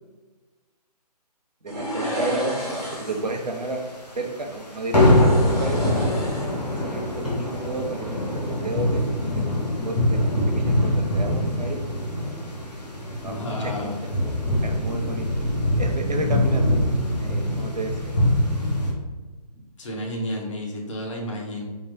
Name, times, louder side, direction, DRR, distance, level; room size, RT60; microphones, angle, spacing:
voice 1, 1.6-3.8 4.2-6.1 6.7-9.5 9.8-11.8 13.2-14.3 14.6-16.8 17.2-18.1, right 2 dB, 85° right, 3 dB, 0.8 m, -32 dB
opening of the lift doors, 1.7-3.3 4.9-6.8 7.1-7.3, equal, 5° right, 0.8 m, -31 dB
sound 1, 2.7-3.7 4.0-4.2 4.5-4.7 4.9-18.9, left 1 dB, 85° left, 1.2 m, -23 dB
voice 2, 13.2-14.0 19.8-21.6, equal, 50° left, -1 dB, 1.0 m, -31 dB
3.9 x 2.2 x 3.9 m, 1.3 s
figure-of-eight pair, 140°, 21 cm